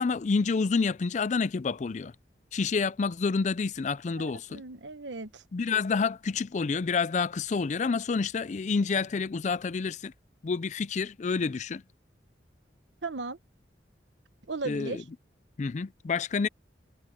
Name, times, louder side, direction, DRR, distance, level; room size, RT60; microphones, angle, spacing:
voice 1, 0.0-2.1 2.5-4.6 5.5-10.1 10.4-11.8 14.6-15.0 15.6-16.5, left 5 dB, 40° left, 0.4 m, -28 dB
voice 2, 4.2-5.4 13.0-13.4 14.5-15.0, right 3 dB, 85° right, 1.1 m, -36 dB
head